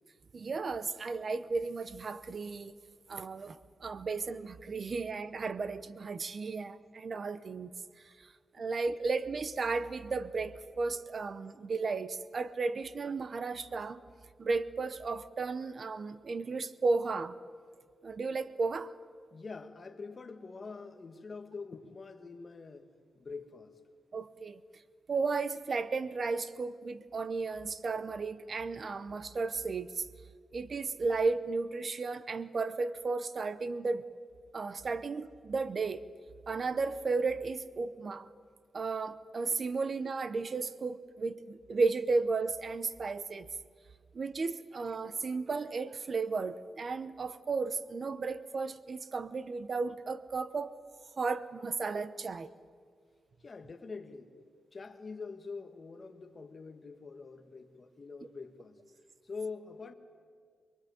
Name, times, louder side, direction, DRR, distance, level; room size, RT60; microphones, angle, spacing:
voice 1, 0.3-2.8 3.1-7.7 8.0-14.0 14.4-17.3 18.0-18.9 24.1-24.6 25.1-30.1 30.5-34.0 34.5-36.0 36.5-38.3 38.7-43.5 44.1-50.7 51.2-52.5, right 4 dB, 40° right, 0.9 m, -34 dB
voice 2, 19.3-23.8 53.4-54.4 54.7-58.8 59.2-59.9, left 4 dB, 30° left, 1.6 m, -45 dB
23.5 x 23.0 x 9.4 m
wide cardioid pair, 160°, 0 cm